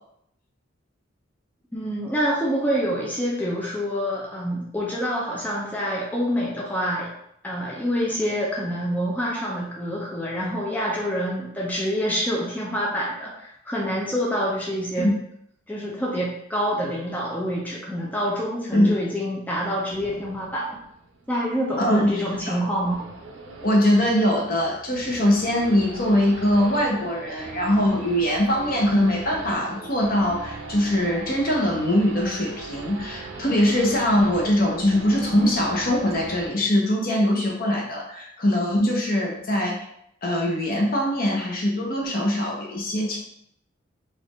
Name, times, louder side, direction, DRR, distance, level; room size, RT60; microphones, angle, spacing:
voice 1, 1.7-7.1 7.4-15.1 15.7-20.7 21.3-23.0, equal, 10° left, -5 dB, 0.5 m, -26 dB
Race car auto racing / Idling / Accelerating revving vroom, 19.9-36.5, right 2 dB, 75° right, 0.6 m, -39 dB
voice 2, 21.8-22.6 23.6-39.9 40.2-43.2, left 1 dB, 45° left, -1 dB, 0.8 m, -22 dB
4.2 x 2.5 x 3.0 m, 0.74 s
head